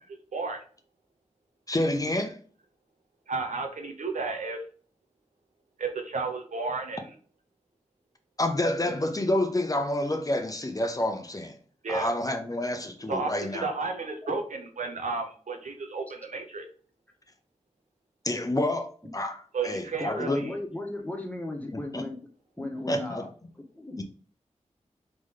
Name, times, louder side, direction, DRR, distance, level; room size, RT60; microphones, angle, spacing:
voice 1, 0.3-0.6 3.3-4.6 5.8-7.1 11.8-12.1 13.1-16.7 19.5-20.5, right 4 dB, 85° right, 1.0 m, -32 dB
voice 2, 1.7-2.4 8.4-11.6 11.9-13.7 18.2-20.6 21.9-22.0 22.9-23.2 24.0-24.1, left 1 dB, 30° left, 0.9 m, -28 dB
voice 3, 20.0-22.1 22.6-23.3 23.5-24.0, left 2 dB, 10° left, 1.5 m, -36 dB
3.9 x 3.3 x 3.8 m
cardioid pair, 55°, 12 cm